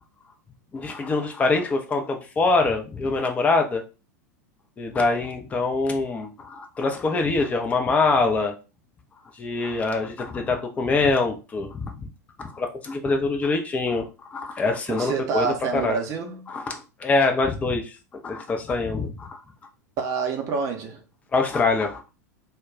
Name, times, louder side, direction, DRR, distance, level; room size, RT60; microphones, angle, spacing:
voice 1, 0.7-3.8 4.8-8.5 9.4-12.1 12.4-16.0 16.5-17.9 18.2-19.4 21.3-22.0, left 3 dB, 15° left, 0.5 m, -24 dB
voice 2, 14.9-16.5 20.0-21.0, right 5 dB, 35° right, 0.7 m, -27 dB
2.2 x 2.1 x 3.6 m
figure-of-eight pair, 90°, 9 cm